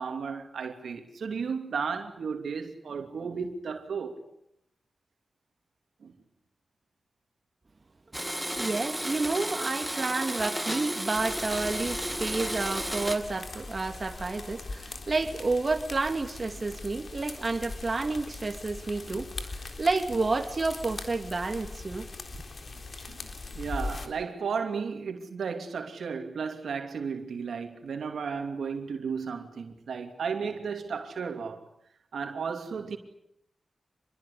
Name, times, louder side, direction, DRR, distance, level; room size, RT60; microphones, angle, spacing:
voice 1, 0.0-4.2 6.0-6.1 23.0-31.6 32.1-33.0, right 5 dB, 90° right, 2.8 m, -34 dB
Domestic sounds home sounds, 8.1-13.2, equal, 5° right, 2.5 m, -33 dB
voice 2, 8.1-22.1, right 3 dB, 45° right, 2.7 m, -30 dB
sound 1, 11.1-24.1, left 3 dB, 60° left, 3.7 m, -41 dB
26.5 x 21.5 x 8.7 m
cardioid pair, 55°, 0 cm